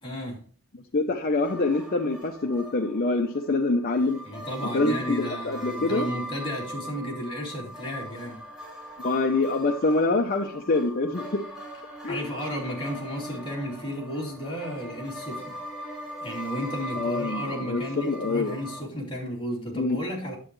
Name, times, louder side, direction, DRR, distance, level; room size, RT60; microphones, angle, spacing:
voice 1, 0.0-0.4 4.2-8.4 12.1-15.6 16.2-20.4, equal, 25° left, 3.0 m, -33 dB
voice 2, 0.9-4.2 4.7-6.1 9.0-11.4 12.0-12.2 17.0-18.6 19.8-20.0, left 3 dB, 40° left, 0.7 m, -25 dB
sound 1, 1.4-18.8, equal, 5° right, 3.2 m, -40 dB
10.0 x 7.6 x 3.1 m
head